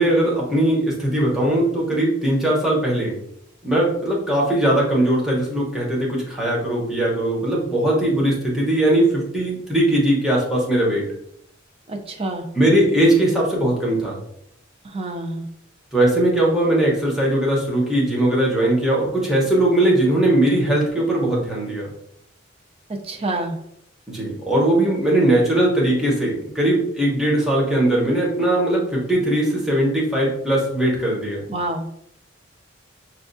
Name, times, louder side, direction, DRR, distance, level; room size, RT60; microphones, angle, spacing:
voice 1, 0.0-3.1 3.6-11.0 12.5-14.2 15.9-21.9 24.1-31.4, right 1 dB, ahead, -4 dB, 1.0 m, -19 dB
voice 2, 11.9-12.4 14.8-15.5 23.0-23.6 31.5-31.9, right 2 dB, 30° right, 2 dB, 0.5 m, -27 dB
5.6 x 2.4 x 2.6 m, 0.72 s
head